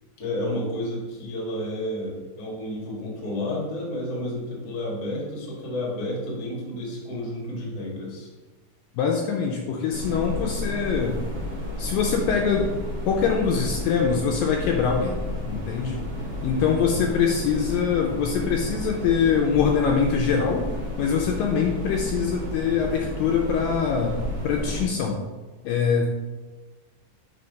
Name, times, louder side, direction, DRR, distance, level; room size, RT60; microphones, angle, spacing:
voice 1, 0.2-8.3 16.6-17.1, left 1 dB, 55° left, -4 dB, 1.0 m, -31 dB
voice 2, 9.0-11.2 11.8-12.7 13.1-16.0 16.4-20.7 21.0-24.2 24.4-25.2 25.7-26.1, left 6 dB, 80° left, 1 dB, 2.1 m, -23 dB
sound 1, 9.9-24.9, left 1 dB, 55° right, 1.4 m, -32 dB
5.7 x 3.5 x 5.1 m, 1.2 s
omnidirectional pair, 4.4 m